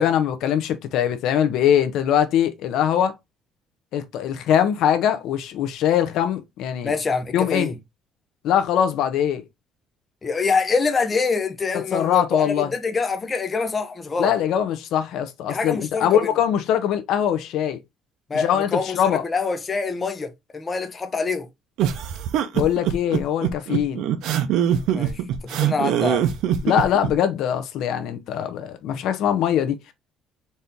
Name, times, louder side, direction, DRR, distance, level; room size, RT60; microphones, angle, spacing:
voice 1, 0.0-3.2 3.9-6.9 7.3-7.7 8.4-9.4 11.9-12.7 14.2-17.8 18.3-19.2 22.5-24.0 26.6-29.9, left 9 dB, 70° left, 0.6 m, -22 dB
voice 2, 6.8-7.7 10.2-14.3 15.5-16.1 18.3-21.5 24.9-25.2 25.5-26.2, left 4 dB, 25° left, 0.6 m, -25 dB
sound 1, 21.8-27.1, right 10 dB, 75° right, 0.6 m, -22 dB
4.2 x 2.6 x 3.5 m
cardioid pair, 145°, 0 cm